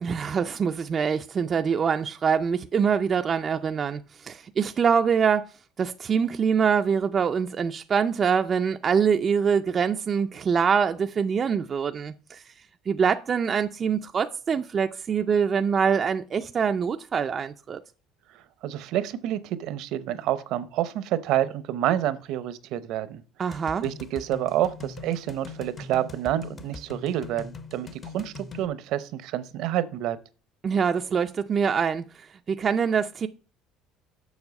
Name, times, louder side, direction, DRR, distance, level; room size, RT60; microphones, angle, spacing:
voice 1, 0.0-5.5 5.8-12.5 12.9-17.8 23.4-23.8 30.6-33.3, right 6 dB, 25° right, 0.3 m, -24 dB
voice 2, 18.6-23.2 23.8-27.9 28.1-30.2, right 12 dB, 60° right, 0.7 m, -28 dB
sound 1, 23.5-28.7, left 4 dB, 25° left, 0.6 m, -42 dB
7.2 x 6.3 x 5.2 m
cardioid pair, 155°, 0 cm